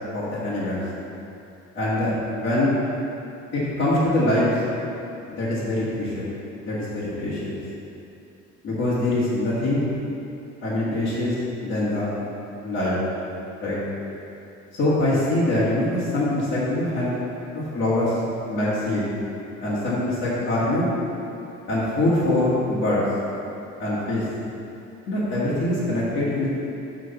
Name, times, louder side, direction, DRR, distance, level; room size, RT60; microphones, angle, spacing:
voice 1, 0.1-0.8 1.8-2.7 3.5-4.6 5.3-6.3 6.6-7.6 8.6-9.9 10.6-11.4 11.6-12.1 12.6-13.0 13.6-13.8 14.7-17.1 17.5-18.2 18.5-19.0 19.6-20.9 21.7-23.0 23.8-24.2 25.1-26.5, left 1 dB, 40° left, -11 dB, 2.0 m, -23 dB
9.5 x 3.9 x 7.0 m, 2.8 s
cardioid pair, 145°, 29 cm